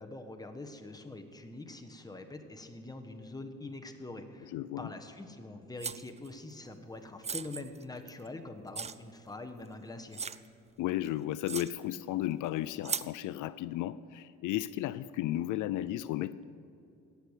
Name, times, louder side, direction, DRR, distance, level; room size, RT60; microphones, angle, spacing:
voice 1, 0.0-10.2, left 2 dB, 10° left, 5 dB, 1.3 m, -44 dB
voice 2, 4.5-4.9 10.8-16.4, left 14 dB, 80° left, 16 dB, 0.4 m, -34 dB
sound 1, 5.8-6.3 7.2-8.3 8.7-8.9 9.6-9.7 10.1-10.5 11.0-11.1 11.5-11.7 12.8-13.1, right 6 dB, 20° right, 0.4 m, -37 dB
18.0 x 6.8 x 8.2 m, 2.6 s
cardioid pair, 90°, 30 cm